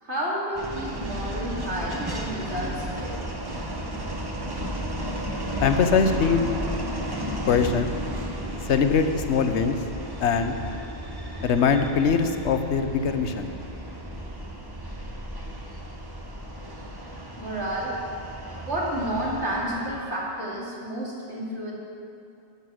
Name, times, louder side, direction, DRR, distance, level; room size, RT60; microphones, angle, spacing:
voice 1, 0.0-3.1 17.4-18.0 18.3-21.7, right 1 dB, 70° right, -6 dB, 3.0 m, -31 dB
sound 1, 0.6-20.0, right 1 dB, 20° right, 1.0 m, -33 dB
voice 2, 5.6-6.5 7.4-7.9 8.7-9.8 10.2-10.6 11.4-13.5, left 6 dB, 75° left, 8 dB, 1.0 m, -22 dB
12.5 x 9.0 x 6.3 m, 2.6 s
omnidirectional pair, 1.2 m